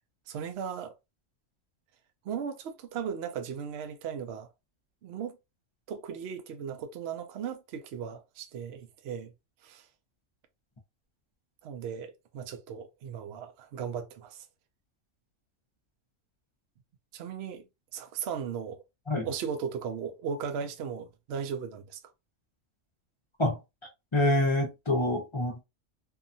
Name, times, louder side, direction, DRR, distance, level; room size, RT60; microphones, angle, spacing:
voice 1, 0.3-0.9 2.2-4.5 5.0-5.4 5.9-9.3 9.6-9.9 11.6-14.5 17.1-17.6 17.9-18.8 19.2-22.0, right 7 dB, 65° right, 0.7 m, -37 dB
voice 2, 24.1-25.6, left 1 dB, 30° left, 0.5 m, -26 dB
2.7 x 2.3 x 2.6 m
omnidirectional pair, 1.4 m